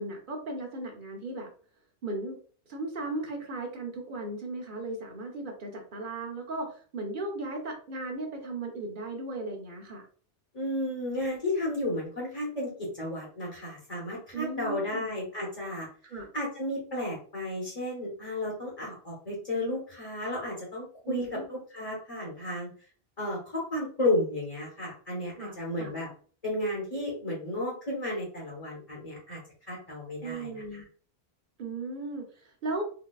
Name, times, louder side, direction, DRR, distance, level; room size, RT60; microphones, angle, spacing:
voice 1, 0.0-1.5 2.0-2.4 2.7-10.1 14.3-15.1 16.0-16.3 21.0-21.5 25.4-25.9 30.2-30.9 31.6-32.8, right 2 dB, 55° right, 2 dB, 0.9 m, -36 dB
voice 2, 10.5-15.9 16.3-22.7 23.2-26.1 26.4-29.4 29.7-30.6, left 1 dB, 40° left, -4 dB, 1.1 m, -33 dB
4.0 x 2.2 x 2.3 m, 0.42 s
omnidirectional pair, 1.1 m